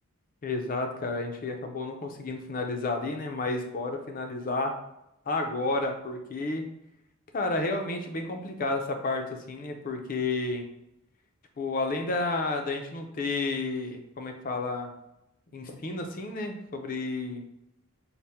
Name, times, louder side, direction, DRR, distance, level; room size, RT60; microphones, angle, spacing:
voice 1, 0.4-4.8 5.3-6.7 7.3-10.7 11.6-14.9 15.5-17.4, left 3 dB, 40° left, 4 dB, 0.4 m, -31 dB
4.1 x 2.1 x 3.4 m, 0.85 s
head